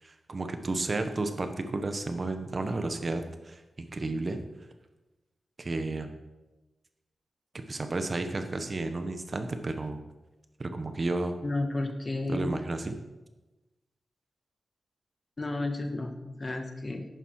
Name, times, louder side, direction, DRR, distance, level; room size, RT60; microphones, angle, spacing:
voice 1, 0.0-4.4 5.6-6.1 7.7-10.0 10.6-11.4 12.3-13.0, right 2 dB, 40° right, 7 dB, 1.2 m, -32 dB
voice 2, 11.4-12.6 15.4-17.1, left 2 dB, 35° left, 5 dB, 1.5 m, -32 dB
11.0 x 9.4 x 4.8 m, 1.1 s
cardioid pair, 75°, 0 cm